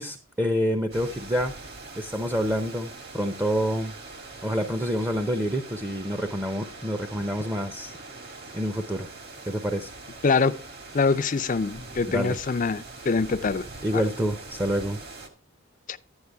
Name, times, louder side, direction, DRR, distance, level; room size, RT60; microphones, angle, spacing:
voice 1, 0.0-1.6 2.0-3.9 4.4-8.0 8.5-9.1 9.5-9.9 12.1-12.4 13.8-15.0, equal, 10° right, 0.6 m, -27 dB
sound 1, 0.9-15.3, right 3 dB, 45° right, 1.7 m, -43 dB
voice 2, 10.2-10.6 10.9-13.7 13.9-14.0 15.9-16.0, left 4 dB, 35° left, 0.5 m, -24 dB
11.0 x 9.7 x 3.5 m
head